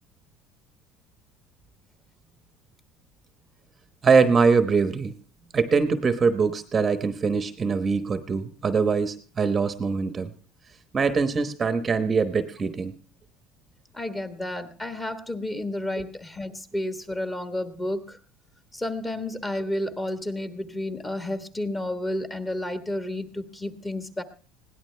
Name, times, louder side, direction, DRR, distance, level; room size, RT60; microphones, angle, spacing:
voice 1, 4.0-5.1 5.5-10.3 10.9-13.0, right 5 dB, 20° right, 10 dB, 1.0 m, -23 dB
voice 2, 13.9-18.2 18.7-24.2, left 1 dB, 15° left, 9 dB, 1.5 m, -31 dB
21.0 x 17.0 x 3.3 m, 0.36 s
cardioid pair, 155°, 0 cm